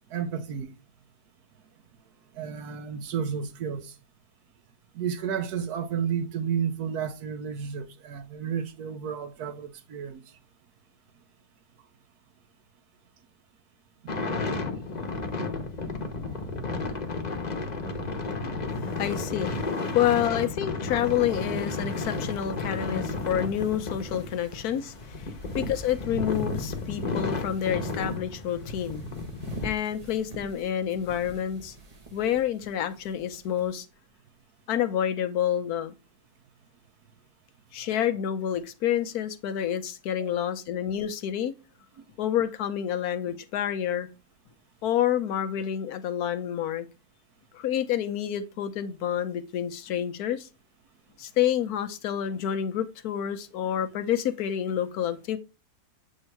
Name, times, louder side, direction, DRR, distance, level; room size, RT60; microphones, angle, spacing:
voice 1, 0.1-0.7 2.3-4.0 4.9-10.2 14.7-14.8 15.6-15.7 16.3-16.4 18.4-18.7 40.2-40.4 42.0-42.1, right 7 dB, 90° right, 1.3 m, -32 dB
sound 1, 14.1-29.7, left 3 dB, 35° left, 0.9 m, -32 dB
voice 2, 18.8-29.0 29.6-31.7 32.1-33.9 34.7-35.9 37.7-41.5 42.2-44.1 44.8-46.9 47.5-50.5 51.2-55.4, left 10 dB, 85° left, 1.2 m, -28 dB
sound 2, 21.3-33.7, right 3 dB, 30° right, 0.9 m, -48 dB
7.9 x 2.8 x 4.4 m
omnidirectional pair, 1.6 m